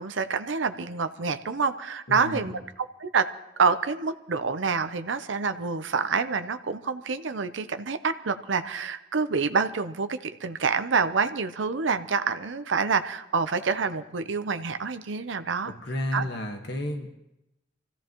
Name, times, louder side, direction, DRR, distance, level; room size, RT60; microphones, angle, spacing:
voice 1, 0.0-3.3 3.6-15.7 16.1-16.3, right 5 dB, 75° right, 9 dB, 0.7 m, -27 dB
voice 2, 2.1-2.6 15.7-17.1, left 1 dB, 65° left, 4 dB, 1.5 m, -32 dB
25.0 x 15.0 x 3.0 m, 0.88 s
head